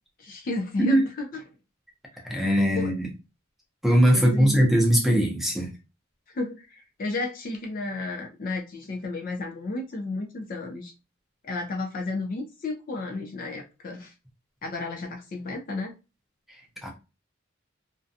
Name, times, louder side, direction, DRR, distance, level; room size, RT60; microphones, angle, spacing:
voice 1, 0.2-1.4 2.4-2.9 4.1-4.6 6.3-10.9 11.4-14.1 14.6-15.9, left 2 dB, 45° left, 0.4 m, -33 dB
voice 2, 2.2-3.1 3.8-5.7 16.8-16.9, equal, ahead, 0.6 m, -20 dB
2.4 x 2.1 x 2.6 m
head